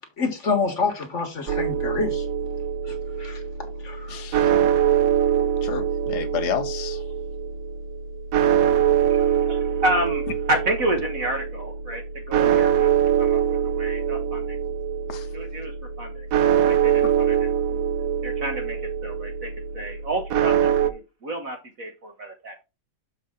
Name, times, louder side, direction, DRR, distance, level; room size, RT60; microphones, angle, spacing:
voice 1, 0.2-2.2 2.8-3.4 3.8-4.2, left 4 dB, 40° left, 1.6 m, -27 dB
sound 1, 1.5-20.9, right 9 dB, 70° right, 0.8 m, -23 dB
voice 2, 4.1-4.5 5.6-7.0 15.1-15.3 17.0-17.1, left 9 dB, 65° left, 1.2 m, -30 dB
voice 3, 8.9-14.6 15.3-15.7 16.0-16.3 16.7-17.8 18.2-22.5, right 1 dB, 50° right, 1.2 m, -30 dB
7.0 x 5.3 x 3.7 m
omnidirectional pair, 2.2 m